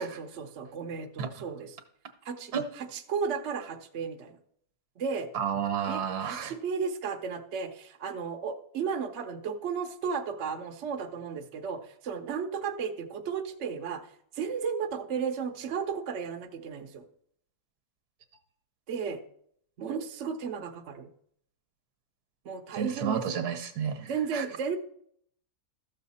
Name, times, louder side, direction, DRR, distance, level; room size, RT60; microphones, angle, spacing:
voice 1, 0.0-1.8 2.2-4.4 5.0-5.3 5.9-14.1 14.3-17.0 18.9-19.2 19.8-21.1 22.4-23.5 24.1-24.8, right 6 dB, 55° right, 5 dB, 0.9 m, -34 dB
voice 2, 5.3-6.5 22.7-24.4, right 7 dB, 70° right, 8 dB, 1.5 m, -31 dB
13.5 x 6.6 x 4.1 m, 0.67 s
omnidirectional pair, 1.7 m